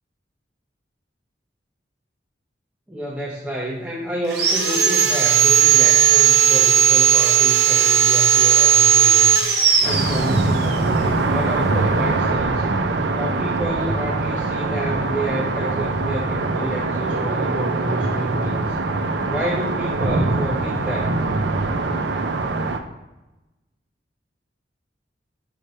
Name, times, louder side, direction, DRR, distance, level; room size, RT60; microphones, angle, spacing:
voice 1, 2.9-9.4 9.8-12.7 13.1-18.8 19.3-21.2, right 1 dB, 5° right, -4 dB, 0.8 m, -29 dB
Sawing, 4.3-10.8, right 8 dB, 60° right, 1.1 m, -16 dB
sound 1, 9.8-22.8, right 3 dB, 80° right, 0.6 m, -23 dB
5.6 x 3.2 x 5.4 m, 1.0 s
head